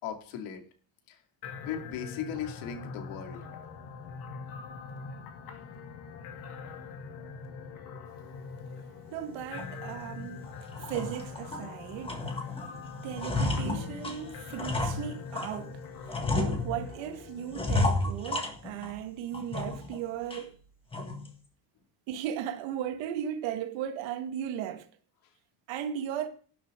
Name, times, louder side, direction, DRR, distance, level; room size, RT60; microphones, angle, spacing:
voice 1, 0.0-0.6 1.1-1.2 1.6-3.4 7.4-7.8, left 8 dB, 70° left, 2.5 m, -38 dB
sound 1, 1.4-17.6, left 5 dB, 50° left, 2.5 m, -43 dB
voice 2, 9.1-10.5 10.8-12.3 13.0-15.8 16.4-20.6 22.1-24.9 25.7-26.3, right 9 dB, 65° right, 2.0 m, -36 dB
sound 2, 9.6-9.7 10.2-10.3 10.8-11.7 12.0-12.7 13.0-15.6 16.1-17.0 17.5-19.0 19.3-20.0 20.3-20.4 20.9-21.3, left 2 dB, 10° left, 1.6 m, -31 dB
12.0 x 10.5 x 3.8 m
cardioid pair, 175°, 49 cm